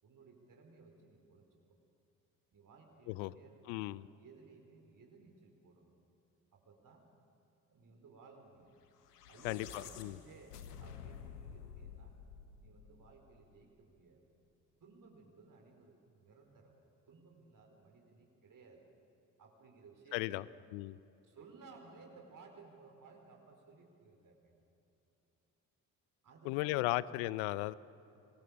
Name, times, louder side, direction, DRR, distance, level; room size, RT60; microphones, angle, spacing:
voice 1, 0.0-1.8 2.5-5.9 6.5-7.0 7.7-8.7 9.3-12.2 12.6-14.2 14.8-16.7 17.1-18.9 19.4-20.6 21.2-24.5 26.2-27.2, right 4 dB, 40° right, 2 dB, 4.4 m, -59 dB
voice 2, 3.7-4.1 9.4-10.1 20.1-20.4 20.7-20.9 26.4-27.7, left 19 dB, 60° left, 20 dB, 0.7 m, -36 dB
sound 1, 9.0-13.4, left 8 dB, 80° left, 1.3 m, -51 dB
26.5 x 22.0 x 6.8 m, 2.9 s
figure-of-eight pair, 45°, 46 cm